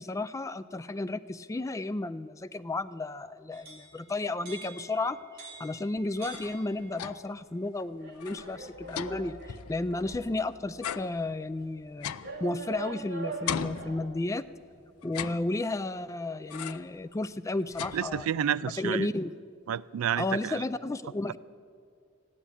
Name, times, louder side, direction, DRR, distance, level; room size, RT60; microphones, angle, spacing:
voice 1, 0.0-5.2 5.6-12.1 12.4-14.4 15.0-18.3 18.8-19.3 20.2-21.4, left 2 dB, 15° left, 14 dB, 0.3 m, -33 dB
sound 1, 3.5-7.2 8.0-10.3 11.0-11.1 12.2-14.1, right 3 dB, 45° right, 2.1 m, -44 dB
sound 2, 6.0-7.4 7.8-7.9 8.1-10.4 10.8-13.0 13.5-14.5 15.0-15.9 16.5-17.0 17.4-18.5, left 8 dB, 85° left, 0.5 m, -39 dB
sound 3, 8.5-11.4, equal, 10° right, 5.2 m, -53 dB
voice 2, 17.9-19.1 19.7-20.6, right 9 dB, 70° right, 19 dB, 0.3 m, -30 dB
15.0 x 10.5 x 8.6 m, 2.3 s
head